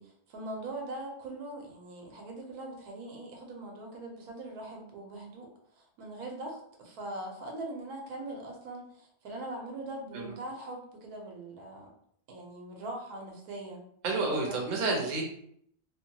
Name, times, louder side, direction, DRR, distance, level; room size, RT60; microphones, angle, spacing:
voice 1, 0.0-11.9 12.3-13.8 14.3-14.6, right 2 dB, 85° right, 0 dB, 1.2 m, -41 dB
voice 2, 14.0-15.2, right 3 dB, 45° right, -1 dB, 0.6 m, -29 dB
2.9 x 2.2 x 2.8 m, 0.67 s
omnidirectional pair, 1.6 m